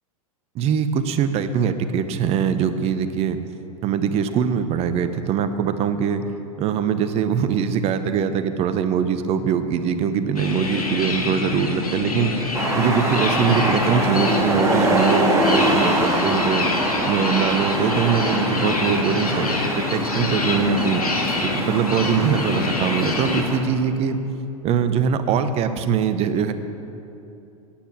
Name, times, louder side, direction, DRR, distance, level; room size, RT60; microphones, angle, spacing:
voice 1, 0.5-3.4 3.8-6.2 6.6-12.3 12.7-16.7 17.0-21.0 21.4-24.2 24.6-26.5, right 7 dB, 35° right, 10 dB, 0.9 m, -22 dB
sound 1, 10.4-23.4, left 4 dB, 80° left, 1.8 m, -25 dB
sound 2, 12.5-23.6, right 1 dB, 15° right, 2.1 m, -24 dB
11.5 x 9.1 x 7.4 m, 2.8 s
figure-of-eight pair, 95°, 19 cm